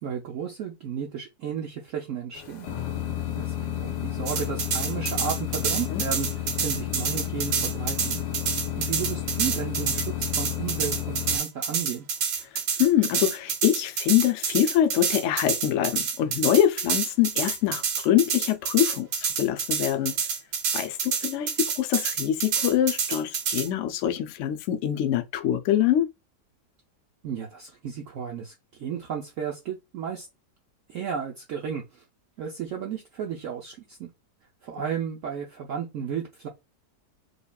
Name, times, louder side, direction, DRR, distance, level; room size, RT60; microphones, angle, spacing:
voice 1, 0.0-2.7 3.4-6.3 6.6-8.2 8.8-12.1 27.2-30.3 30.9-32.0 32.4-34.1 34.6-36.5, right 8 dB, 65° right, 0.8 m, -33 dB
sound 1, 2.3-11.4, left 11 dB, 85° left, 1.3 m, -32 dB
sound 2, 4.3-23.7, right 6 dB, 80° right, 1.4 m, -28 dB
voice 2, 12.8-20.1 20.7-26.1, left 11 dB, 70° left, 0.7 m, -24 dB
5.1 x 2.3 x 2.3 m
omnidirectional pair, 1.8 m